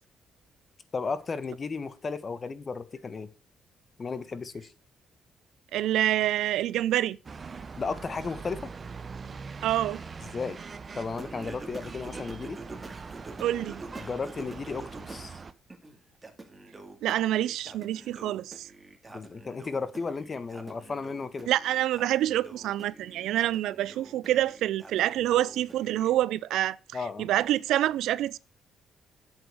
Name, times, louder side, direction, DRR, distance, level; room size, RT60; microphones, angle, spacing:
voice 1, 0.9-3.3 4.0-4.7 7.8-8.6 10.3-10.6 10.9-12.6 14.0-15.4 19.1-21.5 26.9-27.3, left 4 dB, 35° left, 1.4 m, -34 dB
voice 2, 5.7-7.2 9.6-10.0 13.4-13.8 17.0-18.7 21.5-26.8 27.2-28.4, right 13 dB, 85° right, 0.5 m, -27 dB
sound 1, 7.2-15.5, right 5 dB, 35° right, 1.0 m, -42 dB
Singing, 11.2-15.3 15.7-26.1, right 2 dB, 20° right, 2.3 m, -47 dB
8.2 x 8.2 x 6.4 m
cardioid pair, 90°, 0 cm